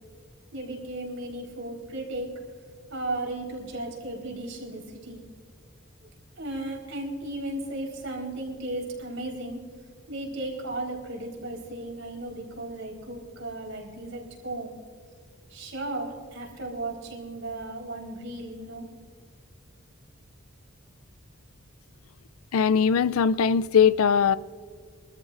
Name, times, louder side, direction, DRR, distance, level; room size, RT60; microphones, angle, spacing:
voice 1, 0.5-2.4 2.9-5.3 6.4-9.6 10.1-14.7 15.5-18.8, right 2 dB, 70° right, 4.2 m, -35 dB
voice 2, 22.5-24.4, left 6 dB, 85° left, 0.4 m, -20 dB
25.0 x 14.0 x 2.6 m
head